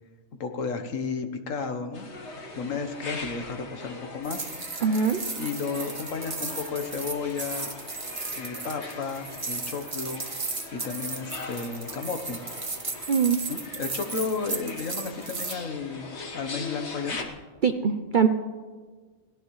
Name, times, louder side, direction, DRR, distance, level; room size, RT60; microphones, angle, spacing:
voice 1, 0.4-2.1 2.3-4.5 5.3-7.7 8.3-10.2 10.7-12.4 13.5-17.2, left 5 dB, 70° left, 6 dB, 1.5 m, -33 dB
sound 1, 1.9-17.2, left 3 dB, 55° left, 1.7 m, -41 dB
sound 2, 4.2-15.6, right 3 dB, 25° right, 1.1 m, -35 dB
voice 2, 4.8-5.2 13.1-13.4 17.6-18.3, right 6 dB, 50° right, 8 dB, 0.6 m, -22 dB
21.5 x 17.0 x 3.2 m, 1.4 s
omnidirectional pair, 1.4 m